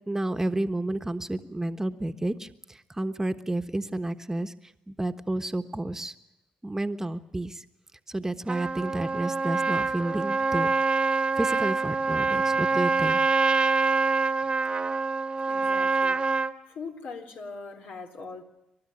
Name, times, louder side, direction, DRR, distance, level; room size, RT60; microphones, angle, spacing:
voice 1, 0.1-4.5 4.9-6.1 6.6-7.6 8.1-11.0 11.4-13.2, right 1 dB, 15° right, 8 dB, 1.3 m, -31 dB
Trumpet, 8.5-16.5, right 4 dB, 30° right, 1.3 m, -25 dB
voice 2, 15.5-16.2 16.7-18.4, left 4 dB, 70° left, 4 dB, 3.8 m, -41 dB
27.5 x 12.5 x 10.0 m, 0.90 s
supercardioid pair, 70°, 3 cm